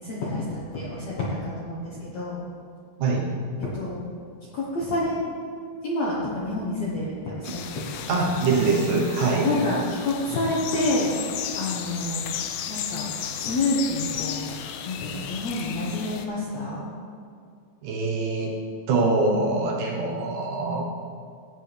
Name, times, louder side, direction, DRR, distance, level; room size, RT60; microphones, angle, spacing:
voice 1, 0.0-2.4 3.6-4.0 4.5-5.2 5.8-8.6 9.4-11.1 11.5-12.3 12.7-14.6 14.9-16.9, left 2 dB, 60° left, -6 dB, 1.9 m, -28 dB
sound 1, 7.4-16.3, left 9 dB, 85° left, 2.5 m, -34 dB
voice 2, 8.1-9.5 17.8-18.5 18.9-20.8, right 3 dB, 65° right, -1 dB, 2.6 m, -23 dB
15.5 x 8.5 x 3.5 m, 2.3 s
omnidirectional pair, 4.4 m